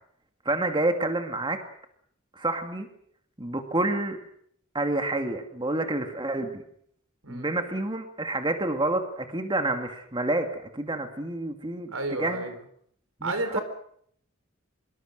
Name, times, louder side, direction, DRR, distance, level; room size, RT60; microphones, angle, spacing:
voice 1, 0.5-1.6 2.4-2.9 3.4-4.2 4.7-6.6 7.3-12.5 13.2-13.6, right 2 dB, 25° right, 6 dB, 2.3 m, -28 dB
voice 2, 7.2-7.6 11.9-12.6 13.2-13.6, right 2 dB, 80° right, 9 dB, 4.1 m, -31 dB
25.0 x 24.0 x 6.6 m, 0.65 s
head